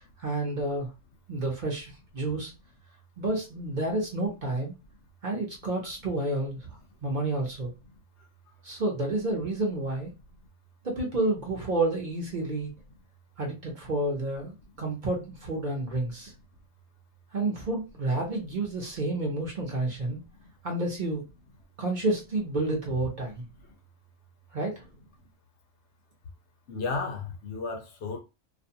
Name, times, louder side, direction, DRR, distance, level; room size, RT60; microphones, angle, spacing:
voice 1, 0.2-0.9 1.3-2.5 3.2-4.8 5.2-6.7 7.0-7.7 8.6-10.1 10.8-12.7 13.4-16.3 17.3-20.2 20.6-21.2 21.8-23.4 24.5-24.8, right 2 dB, 45° right, 0.8 m, -30 dB
voice 2, 20.1-20.5 26.7-28.2, left 4 dB, 70° left, 0.9 m, -34 dB
2.5 x 2.2 x 2.7 m
omnidirectional pair, 1.3 m